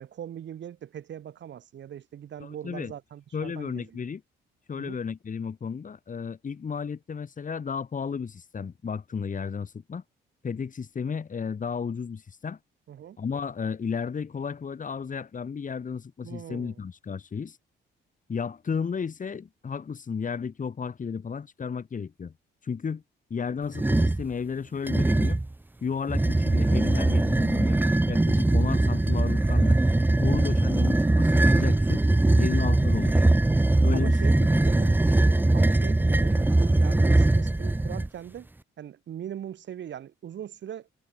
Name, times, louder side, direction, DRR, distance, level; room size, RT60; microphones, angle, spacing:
voice 1, 0.0-4.0 4.8-5.0 12.9-13.2 16.2-16.8 33.9-38.5 38.8-40.9, right 10 dB, 65° right, 6.2 m, -41 dB
voice 2, 2.4-2.9 3.3-4.2 4.7-10.0 10.4-12.6 13.2-17.6 18.3-22.3 22.6-23.0 23.3-25.4 25.8-27.8 28.1-29.8 30.2-32.0 32.4-33.4 33.8-35.0, left 6 dB, 40° left, 5.9 m, -33 dB
sound 1, 23.7-24.3 24.9-25.5 26.1-38.1, right 2 dB, 10° right, 0.8 m, -21 dB
cardioid pair, 90°, 20 cm